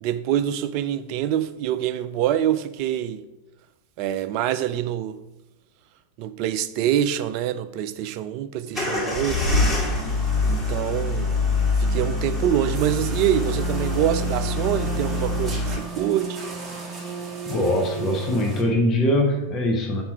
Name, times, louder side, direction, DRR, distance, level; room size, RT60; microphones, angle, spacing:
voice 1, 0.0-3.2 4.0-5.2 6.2-9.5 10.5-11.3 11.8-16.4, right 11 dB, 45° right, 0.4 m, -25 dB
sound 1, 8.7-15.8, left 2 dB, 10° left, 1.7 m, -24 dB
sound 2, 12.7-18.6, right 4 dB, 15° right, 1.1 m, -33 dB
voice 2, 17.5-20.0, left 1 dB, 25° left, 1.0 m, -22 dB
5.8 x 4.4 x 4.4 m
figure-of-eight pair, 90°, 0 cm